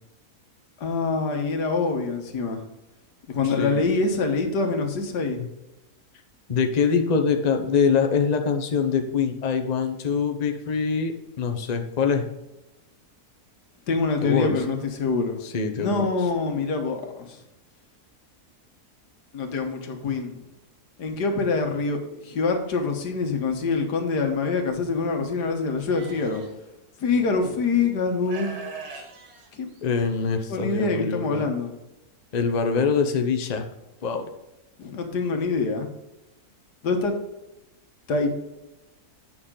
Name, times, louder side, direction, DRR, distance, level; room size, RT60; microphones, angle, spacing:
voice 1, 0.8-2.6 3.3-5.4 13.9-15.4 15.8-17.4 19.3-20.4 21.0-26.4 27.0-28.6 29.5-29.7 30.5-31.7 34.8-35.9 36.8-37.2 38.1-38.3, left 4 dB, 90° left, 4 dB, 1.8 m, -25 dB
voice 2, 6.5-12.3 14.2-14.5 15.4-16.1 29.8-31.4 32.3-33.7 34.0-34.3, left 5 dB, 35° left, 5 dB, 0.7 m, -24 dB
Livestock farm animals working animals, 25.9-26.5 27.4-27.5 28.2-30.2, right 5 dB, 70° right, 1.9 m, -40 dB
8.5 x 6.5 x 3.8 m, 0.98 s
omnidirectional pair, 1.7 m